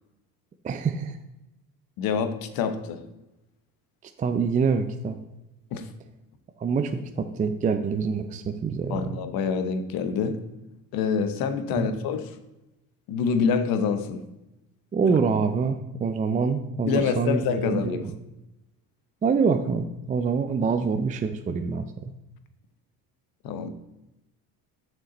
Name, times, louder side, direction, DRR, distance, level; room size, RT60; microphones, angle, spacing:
voice 1, 0.6-1.2 4.2-5.2 6.6-9.2 11.7-11.9 14.9-18.1 19.2-22.1, right 5 dB, 20° right, 8 dB, 0.4 m, -26 dB
voice 2, 2.0-3.0 5.7-5.9 8.9-10.4 10.9-12.2 13.1-14.2 16.8-18.1 23.4-23.7, left 6 dB, 70° left, 9 dB, 1.0 m, -26 dB
6.7 x 6.4 x 4.1 m, 0.94 s
cardioid pair, 120°, 36 cm